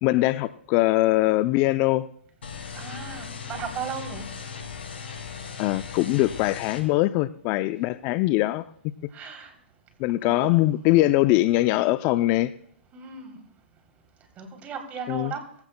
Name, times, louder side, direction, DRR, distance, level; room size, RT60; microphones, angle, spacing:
voice 1, 0.0-2.1 5.6-8.7 10.0-12.5 15.1-15.3, left 17 dB, 35° left, 14 dB, 0.4 m, -22 dB
sound 1, 2.4-6.8, left 6 dB, 75° left, 5.2 m, -38 dB
voice 2, 2.7-4.2 9.1-9.5 10.2-10.6 12.9-13.3 14.4-15.4, right 6 dB, 25° right, 4 dB, 3.1 m, -36 dB
22.5 x 15.5 x 2.2 m, 0.64 s
hypercardioid pair, 125°, 6 cm